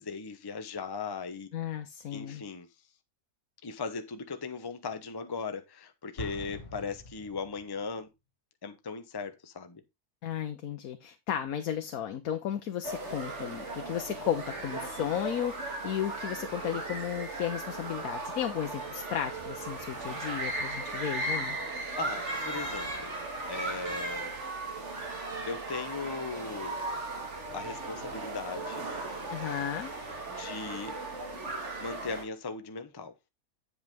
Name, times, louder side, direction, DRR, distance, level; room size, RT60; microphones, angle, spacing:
voice 1, 0.0-1.5 2.1-2.7 3.6-8.1 8.6-9.8 22.0-23.1 23.5-24.3 25.5-26.8 27.5-28.9 30.3-31.0 31.8-33.1, left 4 dB, 20° left, 0.7 m, -38 dB
voice 2, 1.5-2.4 10.2-21.6 29.3-29.9, left 10 dB, 65° left, 1.3 m, -34 dB
Explosion, 6.2-7.9, left 2 dB, 50° left, 2.6 m, -44 dB
sound 1, 12.8-32.2, right 2 dB, 50° right, 2.2 m, -37 dB
8.2 x 7.9 x 3.5 m
omnidirectional pair, 1.6 m